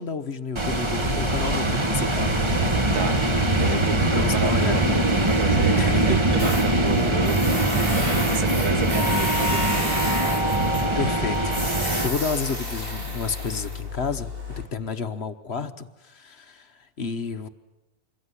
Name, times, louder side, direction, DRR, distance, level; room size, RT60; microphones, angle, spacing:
voice 1, 0.0-2.4 4.1-4.8 5.8-6.2 11.0-14.3 14.6-17.5, left 4 dB, 45° left, 9 dB, 1.3 m, -30 dB
sound 1, 0.5-12.1, right 1 dB, 20° right, 1.4 m, -22 dB
voice 2, 3.6-5.8 6.1-10.0, right 6 dB, 85° right, 11 dB, 1.8 m, -32 dB
Tools, 6.4-14.6, left 1 dB, 35° right, 4.3 m, -31 dB
26.5 x 20.5 x 9.8 m, 1.0 s
omnidirectional pair, 1.6 m